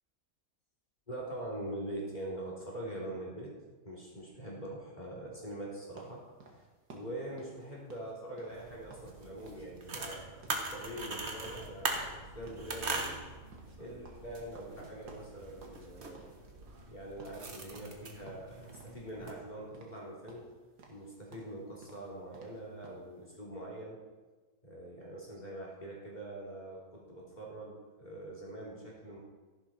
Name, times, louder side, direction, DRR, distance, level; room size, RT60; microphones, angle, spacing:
voice 1, 1.1-3.5 3.8-6.2 6.9-10.3 10.7-13.2 13.8-16.2 16.9-20.5 20.9-24.0 24.6-29.2, right 1 dB, 25° left, -4 dB, 3.5 m, -43 dB
sound 1, 6.0-9.1 9.4-9.7 9.9-12.2 12.5-12.7 13.0-15.9 16.1-16.9 17.2-17.4 17.7-19.0 19.3-20.0 20.3-23.1, right 3 dB, 85° right, 2.3 m, -56 dB
sound 2, 8.5-19.3, right 3 dB, 45° right, 1.7 m, -42 dB
14.0 x 11.0 x 4.4 m, 1.3 s
omnidirectional pair, 1.7 m